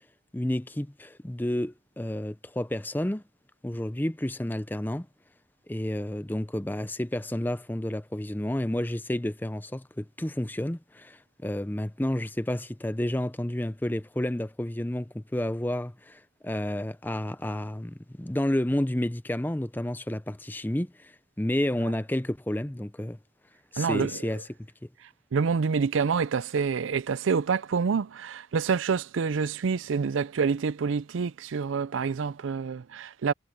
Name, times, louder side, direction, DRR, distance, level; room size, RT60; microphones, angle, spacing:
voice 1, 0.3-3.2 3.6-5.1 5.7-21.1 21.4-23.2 23.7-24.4, left 1 dB, 10° left, 0.6 m, -30 dB
voice 2, 23.8-24.3 25.3-33.3, right 5 dB, 80° right, 0.4 m, -27 dB
head